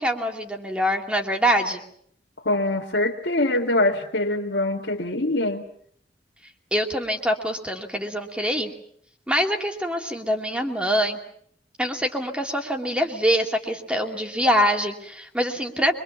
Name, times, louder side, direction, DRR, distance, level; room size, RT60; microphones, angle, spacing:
voice 1, 0.0-1.8 6.7-8.7 9.3-11.2 11.8-15.9, equal, 5° right, 3 dB, 2.4 m, -24 dB
voice 2, 2.4-5.7, left 2 dB, 75° left, -4 dB, 2.0 m, -23 dB
25.0 x 23.5 x 7.1 m, 0.67 s
head